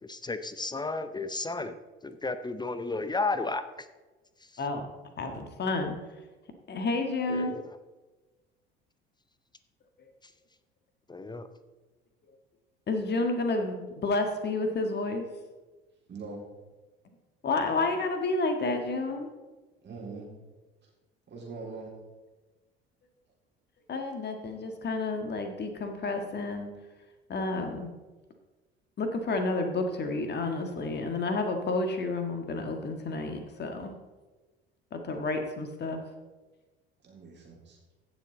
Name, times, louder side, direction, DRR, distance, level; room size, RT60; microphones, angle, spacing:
voice 1, 0.0-1.8 2.0-3.6 4.4-4.6 7.3-7.8 11.1-11.5, left 3 dB, 15° left, 11 dB, 0.6 m, -33 dB
voice 2, 4.6-4.9 5.2-6.0 6.7-7.5 12.9-13.8 14.0-15.3 17.4-19.3 23.9-26.7 27.3-27.9 29.0-33.9 34.9-36.0, left 3 dB, 35° left, 6 dB, 1.7 m, -30 dB
voice 3, 16.1-16.4 19.8-20.3 20.8-20.9 21.3-22.0 37.0-37.8, right 3 dB, 35° right, -2 dB, 3.8 m, -42 dB
16.0 x 7.0 x 3.9 m, 1.2 s
figure-of-eight pair, 60°, 31 cm